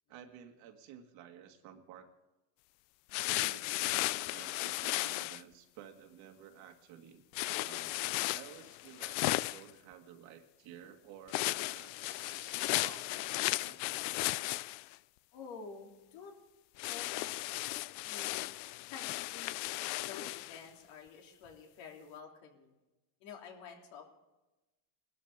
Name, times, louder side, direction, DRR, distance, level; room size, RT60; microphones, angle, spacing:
voice 1, 0.1-2.1 3.2-7.2 7.6-8.0 8.3-14.0, right 9 dB, 70° right, 5 dB, 2.2 m, -53 dB
sound 1, 3.1-5.4 7.3-9.7 11.3-14.9 16.8-20.6, left 20 dB, 85° left, 0.6 m, -35 dB
voice 2, 15.3-16.4 16.8-18.5 18.8-19.7 20.1-22.7 23.2-24.2, left 6 dB, 65° left, 1 dB, 3.5 m, -50 dB
21.0 x 13.0 x 3.7 m, 1.0 s
cardioid pair, 140°, 49 cm